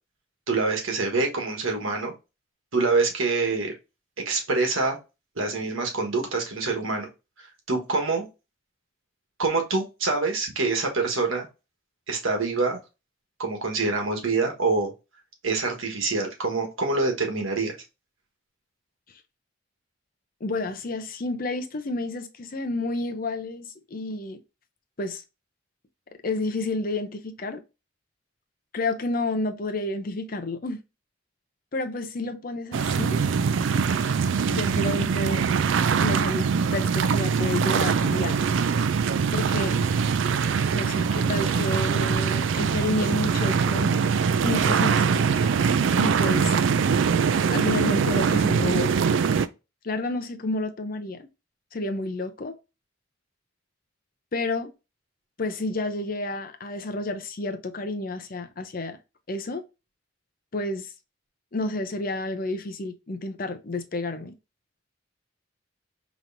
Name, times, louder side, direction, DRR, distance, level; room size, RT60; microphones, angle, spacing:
voice 1, 0.5-2.1 2.7-3.7 4.2-5.0 5.4-7.1 7.7-8.3 9.4-11.5 12.1-12.8 13.4-14.9 15.4-17.8, right 3 dB, 85° right, 1.4 m, -25 dB
voice 2, 20.4-24.4 25.0-25.2 26.2-27.6 28.7-30.8 31.7-33.2 34.5-35.4 36.0-38.4 39.3-39.8 40.7-44.1 44.4-45.3 46.0-46.6 47.5-48.9 49.8-51.3 51.7-52.5 54.3-54.7 55.4-59.0 59.3-59.6 60.5-60.9 61.5-64.3, left 2 dB, 45° left, 0.6 m, -30 dB
sound 1, 32.7-49.5, right 6 dB, 65° right, 0.3 m, -23 dB
5.2 x 3.0 x 2.6 m
head